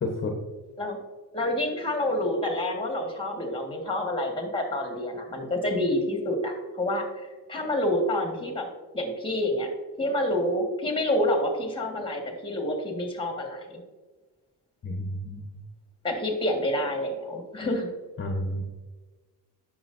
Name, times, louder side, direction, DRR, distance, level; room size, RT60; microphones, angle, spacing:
voice 1, 0.0-0.3 14.8-15.6 18.2-18.6, left 1 dB, 30° left, 2 dB, 1.1 m, -30 dB
voice 2, 1.3-8.7 8.9-9.7 10.0-13.8 16.0-17.9, left 1 dB, 10° left, 3 dB, 1.7 m, -28 dB
9.5 x 6.3 x 2.6 m, 1.3 s
cardioid pair, 110°, 40 cm